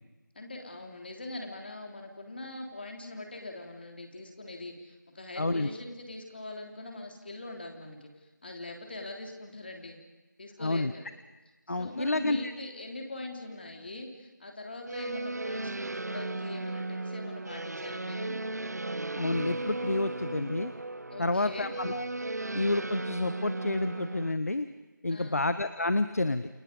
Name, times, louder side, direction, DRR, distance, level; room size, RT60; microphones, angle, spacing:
voice 1, 0.4-8.1 8.4-10.0 10.4-11.1 11.7-18.4 21.1-21.7 25.1-25.4, left 2 dB, 30° left, 2 dB, 3.4 m, -42 dB
voice 2, 5.4-5.7 10.6-10.9 11.7-12.5 19.2-20.7 21.2-22.1 22.5-24.7 25.0-26.5, left 2 dB, 50° left, 12 dB, 1.1 m, -29 dB
sound 1, 14.9-24.3, right 2 dB, 55° right, 0.9 m, -36 dB
29.0 x 29.0 x 5.4 m, 1.2 s
figure-of-eight pair, 175°, 11 cm